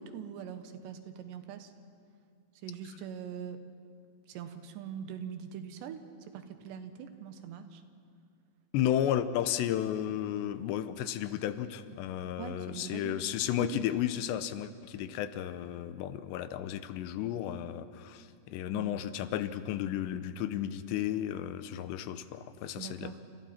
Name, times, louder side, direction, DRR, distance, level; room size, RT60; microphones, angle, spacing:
voice 1, 0.0-1.7 2.6-3.6 4.3-7.8 12.4-13.2 13.6-13.8 18.7-19.0 22.8-23.2, right 8 dB, 85° right, 8 dB, 3.4 m, -42 dB
voice 2, 8.7-23.3, left 11 dB, 90° left, 12 dB, 3.1 m, -33 dB
29.5 x 27.5 x 4.4 m, 2.4 s
omnidirectional pair, 4.9 m